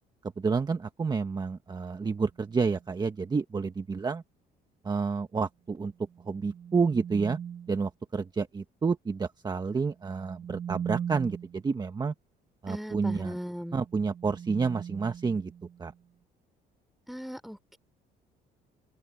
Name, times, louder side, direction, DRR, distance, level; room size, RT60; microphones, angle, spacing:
voice 1, 0.4-4.2 4.8-5.9 6.2-7.4 7.7-12.1 12.6-13.4 13.7-15.5 15.8-15.9, right 5 dB, 25° right, 1.4 m, -29 dB
sound 1, 2.4-2.9 6.0-7.8 10.0-11.7 13.6-16.0, right 8 dB, 40° right, 1.6 m, -40 dB
voice 2, 12.7-13.8 17.1-17.8, equal, ahead, 3.6 m, -38 dB
open air
cardioid pair, 110°, 17 cm